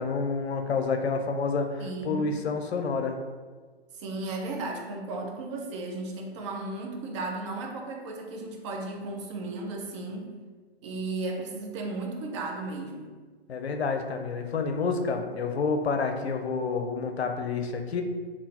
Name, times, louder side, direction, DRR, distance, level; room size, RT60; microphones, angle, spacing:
voice 1, 0.0-3.2 13.5-18.0, left 4 dB, 80° left, 5 dB, 0.5 m, -29 dB
voice 2, 1.8-2.3 3.9-10.3 10.8-13.1, right 2 dB, 30° right, 1 dB, 0.5 m, -35 dB
3.7 x 2.4 x 2.8 m, 1.4 s
figure-of-eight pair, 120°, 32 cm